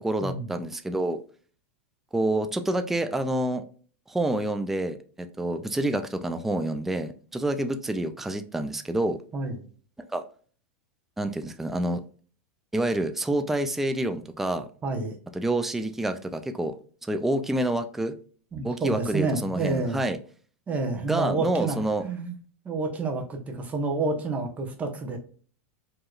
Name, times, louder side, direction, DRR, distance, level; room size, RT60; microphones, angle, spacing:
voice 1, 0.0-1.2 2.1-3.6 4.1-9.2 10.1-10.2 11.2-12.0 12.7-14.7 15.3-16.7 17.0-18.1 18.6-20.2 21.1-22.0, right 1 dB, 5° right, 8 dB, 0.3 m, -28 dB
voice 2, 9.3-9.6 14.8-15.1 18.5-20.0 20.7-22.3 22.6-25.2, right 3 dB, 20° right, 3 dB, 1.0 m, -29 dB
4.9 x 2.9 x 2.4 m, 0.42 s
supercardioid pair, 140°, 7 cm